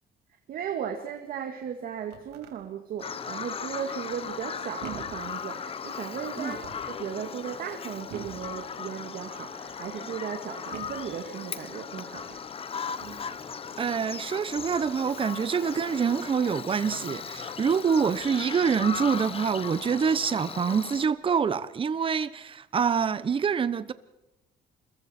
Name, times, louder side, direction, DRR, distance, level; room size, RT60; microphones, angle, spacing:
voice 1, 0.5-12.5, right 8 dB, 60° right, 1.9 m, -36 dB
sound 1, 1.8-2.6 4.1-4.5 4.8-5.3 6.4-7.0 8.1-8.5 9.3-9.8 10.7-11.1 12.1-12.4 13.0-13.3 14.5-14.9 17.0-17.1 17.9-18.3 18.7-19.1, right 8 dB, 80° right, 3.0 m, -45 dB
Bird vocalization bird call bird song, 3.0-21.1, left 6 dB, 35° left, 1.0 m, -37 dB
voice 2, 13.8-23.9, right 6 dB, 30° right, 1.0 m, -26 dB
28.0 x 22.5 x 4.4 m
cardioid pair, 110°, 17 cm